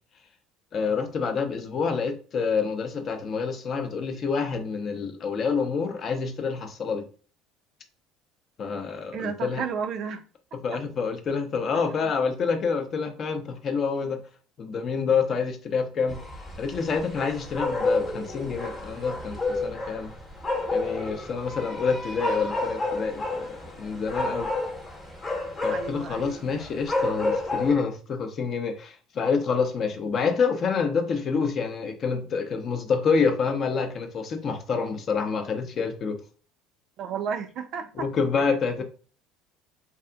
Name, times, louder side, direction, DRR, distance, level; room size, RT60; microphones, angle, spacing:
voice 1, 0.7-7.1 8.6-9.6 10.6-14.2 14.6-16.2 16.6-20.1 20.7-24.5 25.6-36.2 38.0-38.8, left 5 dB, 45° left, 0.5 m, -27 dB
voice 2, 9.1-10.2 12.0-12.1 25.7-26.4 37.0-38.1, right 7 dB, 55° right, 0.3 m, -32 dB
sound 1, 16.1-27.7, left 2 dB, 25° left, 0.9 m, -30 dB
2.7 x 2.4 x 2.2 m
supercardioid pair, 100°, 0 cm